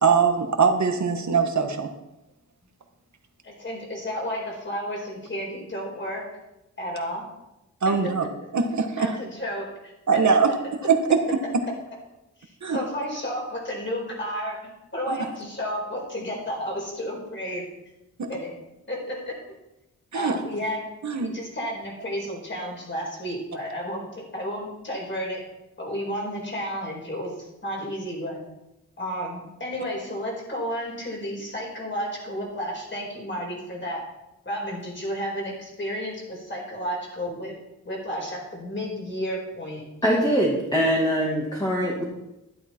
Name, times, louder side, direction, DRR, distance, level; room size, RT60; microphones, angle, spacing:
voice 1, 0.0-1.9 7.8-8.3 8.5-9.1 10.1-10.6 10.8-11.2 12.6-12.8 15.1-15.2 18.2-18.3 20.1-20.4 21.0-21.3, right 5 dB, 65° right, 5 dB, 1.5 m, -22 dB
voice 2, 3.4-6.3 6.8-7.2 7.8-8.1 9.0-9.7 10.1-10.2 12.4-17.7 18.3-18.6 18.9-19.4 20.1-20.9 21.2-25.4 25.8-28.4 29.0-34.1 34.4-37.5 37.8-39.8, equal, 40° left, -2 dB, 4.8 m, -32 dB
voice 3, 40.0-42.0, equal, 15° left, -3 dB, 2.2 m, -23 dB
12.0 x 11.0 x 4.5 m, 0.92 s
wide cardioid pair, 135°, 31 cm